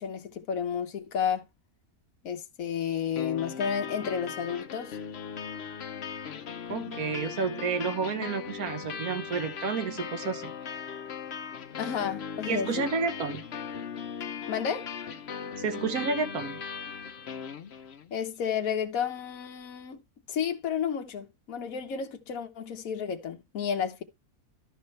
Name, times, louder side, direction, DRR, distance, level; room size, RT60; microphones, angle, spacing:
voice 1, 0.0-1.4 2.2-5.0 8.2-8.3 11.8-12.9 14.5-14.9 18.1-20.0 20.3-24.0, left 7 dB, 70° left, 1.4 m, -31 dB
sound 1, 3.1-18.1, left 7 dB, 55° left, 0.9 m, -38 dB
voice 2, 6.7-10.8 12.5-13.4 15.6-16.6, right 5 dB, 80° right, 1.6 m, -31 dB
12.5 x 5.4 x 3.3 m
omnidirectional pair, 1.5 m